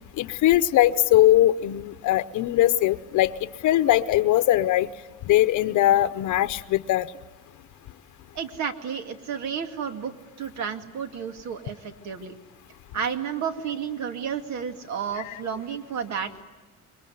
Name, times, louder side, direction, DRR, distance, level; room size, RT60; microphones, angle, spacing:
voice 1, 0.2-3.3 3.6-4.9 5.3-7.1 15.2-15.3, left 14 dB, 75° left, 11 dB, 0.9 m, -20 dB
voice 2, 8.3-12.3 12.9-16.4, right 7 dB, 65° right, 7 dB, 2.3 m, -32 dB
26.5 x 23.0 x 9.4 m, 1.3 s
cardioid pair, 150°, 30 cm